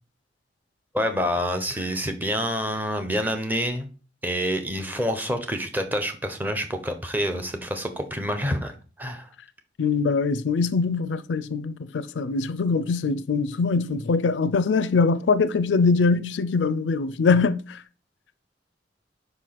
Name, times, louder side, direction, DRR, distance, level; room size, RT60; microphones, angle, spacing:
voice 1, 0.9-3.9 4.2-9.3, equal, 10° right, 0.9 m, -27 dB
voice 2, 9.8-17.8, left 4 dB, 90° left, 0.4 m, -23 dB
5.3 x 4.6 x 5.9 m
head